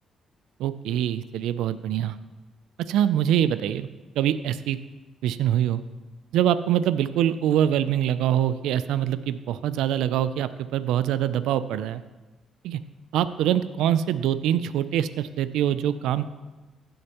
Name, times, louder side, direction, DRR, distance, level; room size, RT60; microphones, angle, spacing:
voice 1, 0.6-2.2 2.9-3.9 4.2-4.8 5.2-5.8 6.3-12.0 12.6-12.8 13.1-16.3, right 10 dB, 90° right, 13 dB, 0.4 m, -24 dB
15.5 x 6.5 x 3.0 m, 1.1 s
cardioid pair, 90°, 0 cm